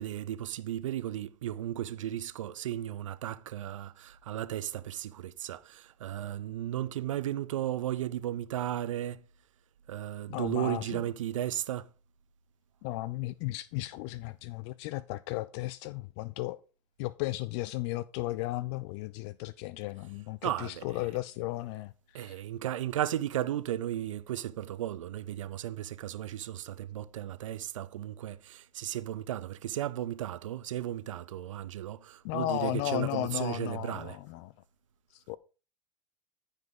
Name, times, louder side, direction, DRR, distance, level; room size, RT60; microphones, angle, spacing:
voice 1, 0.0-9.2 9.9-11.8 20.4-20.8 22.1-34.2, right 12 dB, 75° right, 0.8 m, -35 dB
voice 2, 10.3-11.0 12.8-16.6 17.0-22.4 32.2-34.5 35.1-35.4, left 17 dB, 55° left, 0.5 m, -35 dB
14.5 x 5.3 x 3.9 m
hypercardioid pair, 80°, 17 cm